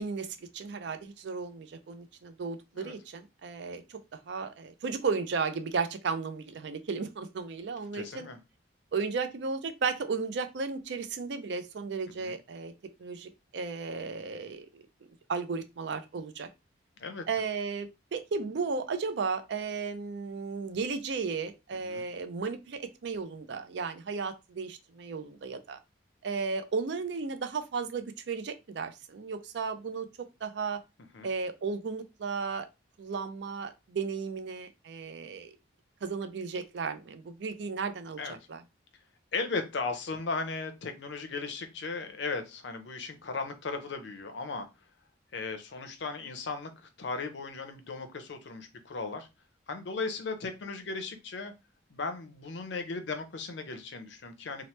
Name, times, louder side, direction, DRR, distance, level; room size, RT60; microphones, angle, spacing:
voice 1, 0.0-4.0 4.3-8.3 8.9-12.7 13.0-14.8 15.3-16.5 17.3-25.8 26.2-30.1 30.4-30.8 31.2-32.7 33.0-35.5 36.0-38.6, right 5 dB, 60° right, 0.4 m, -34 dB
voice 2, 7.9-8.4 12.2-12.3 17.0-17.2 21.7-22.0 31.1-31.3 38.2-38.4 39.3-44.7 45.3-46.7 47.0-49.3 49.7-51.5 51.9-54.7, left 4 dB, 65° left, 0.5 m, -36 dB
2.9 x 2.0 x 3.0 m
head